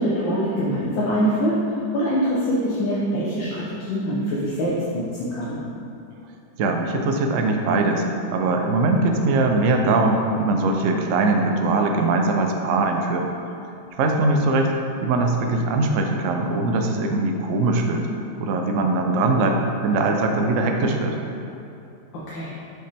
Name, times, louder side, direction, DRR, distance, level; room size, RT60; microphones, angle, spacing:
voice 1, 0.0-5.6 22.1-22.5, equal, 90° left, -7 dB, 1.6 m, -24 dB
voice 2, 6.6-13.3 14.0-14.7 15.0-18.0 18.4-21.2, right 2 dB, 90° right, 3 dB, 0.6 m, -21 dB
5.8 x 5.3 x 3.4 m, 2.7 s
omnidirectional pair, 2.0 m